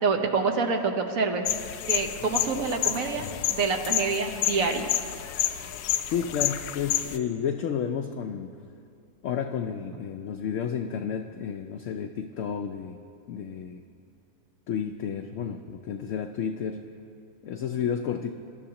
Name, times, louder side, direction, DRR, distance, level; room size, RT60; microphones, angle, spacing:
voice 1, 0.0-1.5 1.9-4.9, right 4 dB, 65° right, 4 dB, 1.3 m, -27 dB
sound 1, 1.4-7.2, left 11 dB, 90° left, 1.1 m, -29 dB
voice 2, 6.1-8.5 9.2-13.0 13.3-13.8 14.7-16.8 17.4-18.3, left 7 dB, 65° left, 4 dB, 0.8 m, -31 dB
23.5 x 12.0 x 2.9 m, 2.6 s
omnidirectional pair, 1.6 m